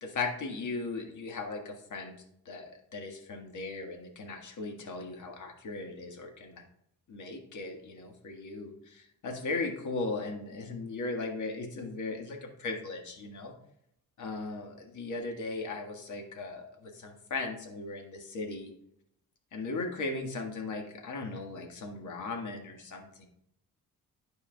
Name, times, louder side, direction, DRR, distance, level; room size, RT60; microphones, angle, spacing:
voice 1, 0.0-2.2 2.5-6.6 7.1-13.5 14.2-18.7 19.5-23.3, left 3 dB, 60° left, 3 dB, 1.7 m, -37 dB
11.5 x 4.7 x 2.3 m, 0.73 s
cardioid pair, 80°, 34 cm